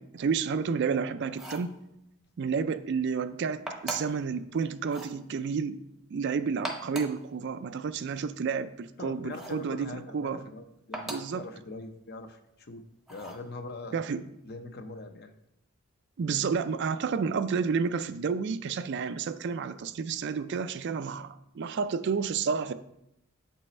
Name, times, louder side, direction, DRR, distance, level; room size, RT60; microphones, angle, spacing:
voice 1, 0.0-1.7 2.4-5.8 6.1-10.4 11.1-11.4 13.9-14.2 16.2-22.7, right 5 dB, 55° right, 12 dB, 0.3 m, -30 dB
sound 1, 1.3-1.7 3.7-4.2 4.8-5.2 6.5-7.2 9.3-9.7 10.9-11.4 13.1-13.5, right 1 dB, ahead, 0.7 m, -39 dB
voice 2, 9.0-12.8 13.1-14.0 14.5-15.3, left 2 dB, 50° left, 7 dB, 0.6 m, -42 dB
7.3 x 5.4 x 4.2 m, 0.82 s
head